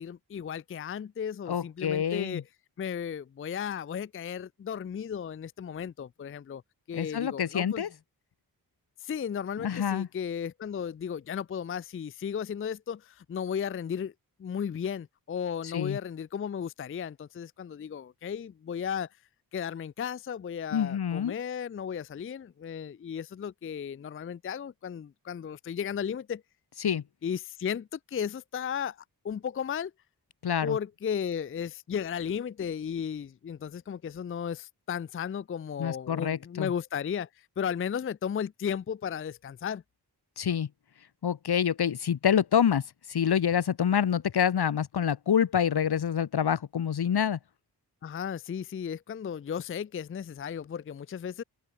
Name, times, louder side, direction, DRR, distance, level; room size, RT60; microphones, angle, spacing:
voice 1, 0.0-2.4 2.8-6.6 6.9-7.8 9.0-14.1 14.4-19.1 19.5-26.4 27.2-29.0 29.2-29.9 30.6-37.3 37.6-39.8 48.0-51.4, left 7 dB, 35° left, 0.4 m, -34 dB
voice 2, 1.5-2.4 6.9-7.9 9.6-10.1 15.6-16.0 20.7-21.3 26.8-27.0 30.4-30.8 35.8-36.7 40.4-40.7 41.2-42.8 43.1-47.4, left 8 dB, 75° left, 1.3 m, -27 dB
wide cardioid pair, 115°, 39 cm